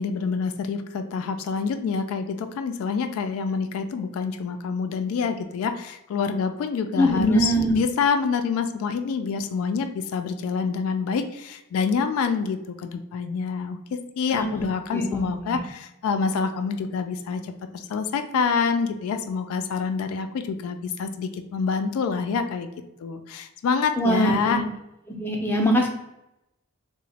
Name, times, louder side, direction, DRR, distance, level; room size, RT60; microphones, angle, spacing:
voice 1, 0.0-22.7 23.0-24.6, left 5 dB, 75° left, 7 dB, 0.3 m, -27 dB
voice 2, 7.0-7.7 14.3-15.2 24.0-24.6 25.1-25.9, equal, 10° left, 0 dB, 0.5 m, -23 dB
2.9 x 2.0 x 4.0 m, 0.87 s
head